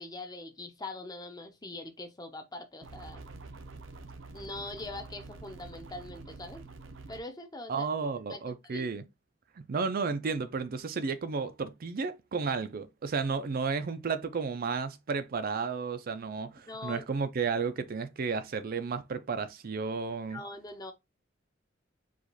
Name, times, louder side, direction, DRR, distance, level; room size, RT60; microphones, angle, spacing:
voice 1, 0.0-3.2 4.3-6.6 7.1-7.9 8.3-8.9 16.7-17.1 20.3-20.9, left 2 dB, 20° left, 0.8 m, -42 dB
sound 1, 2.8-7.2, right 3 dB, 80° right, 0.7 m, -47 dB
voice 2, 7.7-9.0 9.6-20.4, right 5 dB, 50° right, 0.5 m, -33 dB
4.9 x 2.4 x 3.9 m
head